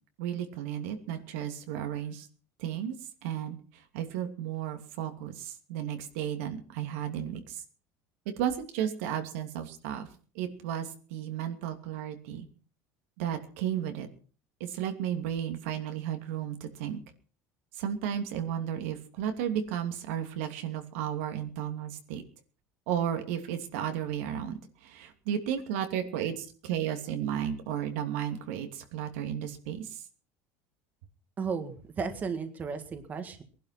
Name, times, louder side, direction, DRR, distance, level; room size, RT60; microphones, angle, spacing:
voice 1, 0.2-2.3 2.6-3.0 3.2-3.6 3.9-7.6 8.4-10.1 10.3-12.5 13.2-14.1 14.6-17.0 17.7-22.2 22.9-30.0, right 9 dB, 85° right, 6 dB, 2.7 m, -33 dB
voice 2, 31.4-33.4, right 5 dB, 25° right, 8 dB, 1.7 m, -34 dB
20.5 x 11.5 x 5.9 m, 0.41 s
cardioid pair, 160°, 7 cm